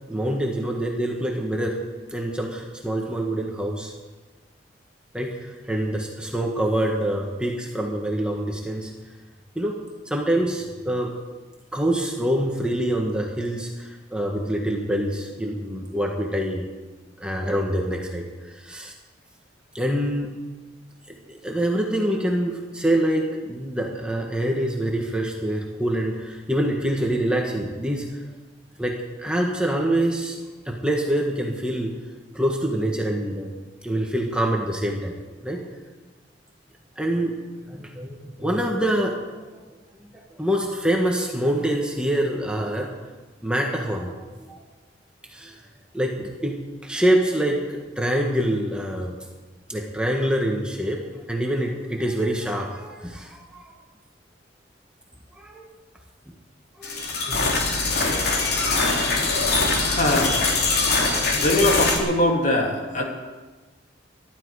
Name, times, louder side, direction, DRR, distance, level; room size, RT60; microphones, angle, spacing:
voice 1, 0.1-1.8 2.1-3.9 5.1-8.9 9.5-9.8 10.0-11.1 11.7-16.6 17.2-18.3 18.5-18.9 19.7-20.3 21.3-28.1 28.8-30.4 30.6-31.9 32.3-33.5 33.8-35.1 35.4-35.6 37.0-37.4 37.7-39.1 39.5-39.6 40.3-42.9 43.4-44.6 45.3-45.6 45.9-49.1 49.7-51.0 51.3-53.7 55.4-55.6 56.8-57.4, right 1 dB, 5° right, 0 dB, 1.6 m, -25 dB
sound 1, 56.8-62.0, left 3 dB, 60° left, 2.8 m, -22 dB
voice 2, 59.3-60.4 61.3-63.0, left 1 dB, 45° left, 0 dB, 2.7 m, -23 dB
20.5 x 13.0 x 4.9 m, 1.3 s
head